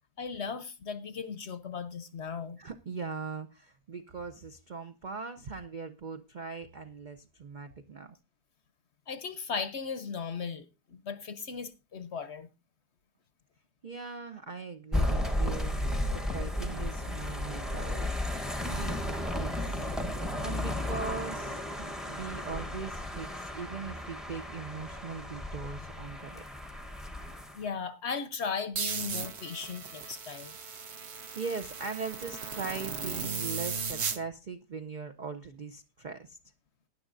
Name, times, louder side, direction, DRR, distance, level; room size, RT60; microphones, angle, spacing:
voice 1, 0.2-2.6 9.1-12.5 27.5-30.6, left 5 dB, 55° left, 0.8 m, -37 dB
voice 2, 2.6-8.2 13.8-15.8 16.1-18.1 18.4-19.9 20.4-26.4 31.0-36.4, right 5 dB, 75° right, 0.4 m, -40 dB
sound 1, 14.9-27.6, left 1 dB, ahead, 0.6 m, -34 dB
sound 2, 28.8-34.2, right 5 dB, 50° right, 1.1 m, -36 dB
19.0 x 10.0 x 2.5 m
omnidirectional pair, 1.7 m